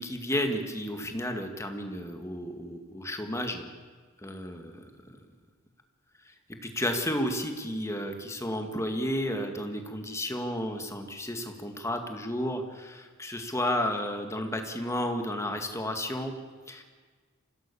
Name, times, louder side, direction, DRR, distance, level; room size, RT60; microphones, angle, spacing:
voice 1, 0.0-3.7 4.2-4.7 6.7-16.3 16.7-16.8, left 1 dB, 15° left, 5 dB, 2.0 m, -32 dB
25.0 x 16.5 x 7.0 m, 1.5 s
head